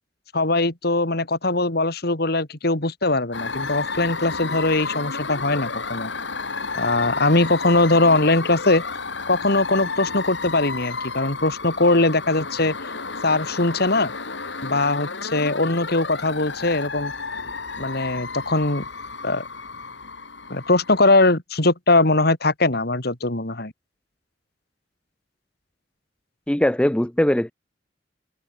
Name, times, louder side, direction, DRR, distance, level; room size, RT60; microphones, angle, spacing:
voice 1, 0.3-6.1 6.7-8.8 9.3-12.7 13.2-14.1 14.6-17.1 17.8-18.8 19.2-19.4 20.5-23.7, left 2 dB, 60° left, 3.3 m, -21 dB
sound 1, 3.3-21.3, left 4 dB, 80° left, 4.1 m, -32 dB
voice 2, 26.5-27.5, left 1 dB, 5° left, 0.6 m, -20 dB
head